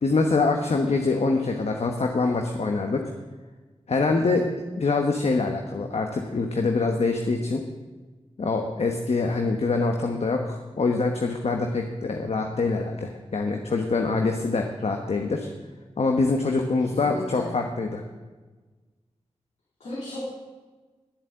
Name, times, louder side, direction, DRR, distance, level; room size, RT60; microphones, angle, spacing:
voice 1, 0.0-3.0 3.9-4.5 4.8-7.6 8.4-15.5 16.0-18.0, left 3 dB, 60° left, 3 dB, 1.1 m, -24 dB
voice 2, 16.9-17.5 19.8-20.2, left 2 dB, 80° left, -8 dB, 3.4 m, -35 dB
11.0 x 7.4 x 7.7 m, 1.3 s
cardioid pair, 40°, 12 cm